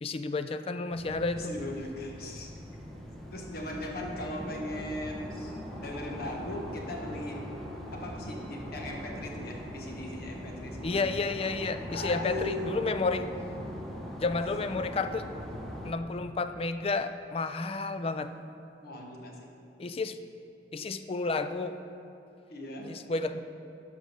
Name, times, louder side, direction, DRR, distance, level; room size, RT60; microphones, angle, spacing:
voice 1, 0.0-1.5 10.8-13.2 14.2-15.2 15.8-18.3 19.8-20.2 20.7-21.8 22.8-23.4, left 3 dB, 35° left, 10 dB, 0.4 m, -31 dB
sound 1, 0.9-15.9, equal, ahead, 1.0 m, -41 dB
voice 2, 1.3-2.5 3.3-7.4 7.9-11.2 11.9-13.3 18.8-19.5 22.5-22.9, left 1 dB, 55° left, 1 dB, 1.3 m, -38 dB
11.5 x 5.0 x 6.6 m, 2.7 s
head